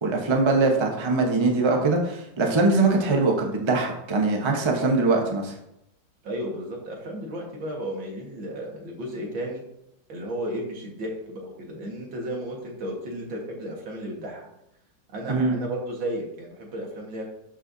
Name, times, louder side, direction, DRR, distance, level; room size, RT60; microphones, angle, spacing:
voice 1, 0.0-5.5 15.3-15.6, right 3 dB, 20° right, 1 dB, 0.8 m, -22 dB
voice 2, 6.2-9.6 10.1-14.5 15.1-17.2, right 1 dB, 80° right, 0 dB, 2.4 m, -33 dB
12.0 x 5.6 x 2.7 m, 0.82 s
omnidirectional pair, 2.1 m